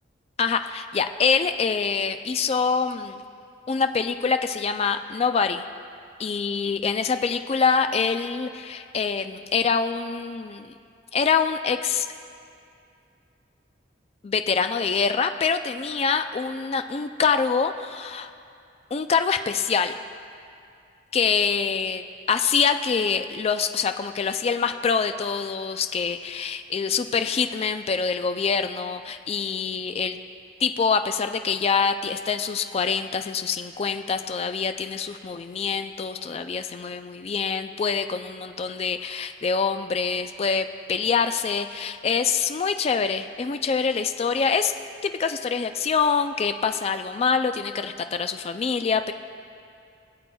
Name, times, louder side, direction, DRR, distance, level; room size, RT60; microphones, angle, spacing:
voice 1, 0.4-3.2 3.7-5.6 6.2-10.8 11.1-12.1 14.2-18.3 18.9-19.9 21.1-30.2 30.6-44.7 45.0-49.1, left 5 dB, 35° left, 9 dB, 0.3 m, -25 dB
20.0 x 7.9 x 2.3 m, 2.4 s
head